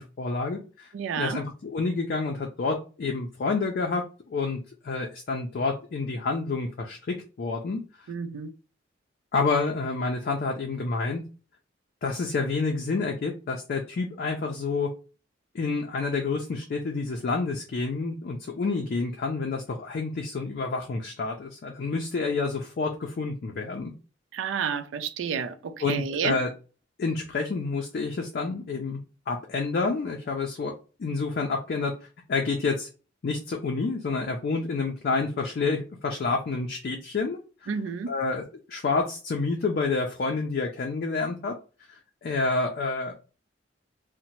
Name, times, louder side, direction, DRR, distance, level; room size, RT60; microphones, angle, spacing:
voice 1, 0.0-0.9 1.2-4.6 4.8-7.8 9.3-11.2 12.0-14.9 15.5-23.9 25.8-26.5 27.0-29.0 29.3-30.7 31.0-31.9 32.3-32.9 33.2-37.4 38.1-38.4 38.7-41.6 41.9-43.1, left 4 dB, 50° left, 0.4 m, -28 dB
voice 2, 0.9-1.5 8.1-8.5 24.3-26.4 37.7-38.1, right 6 dB, 80° right, 0.3 m, -30 dB
2.7 x 2.1 x 2.9 m
head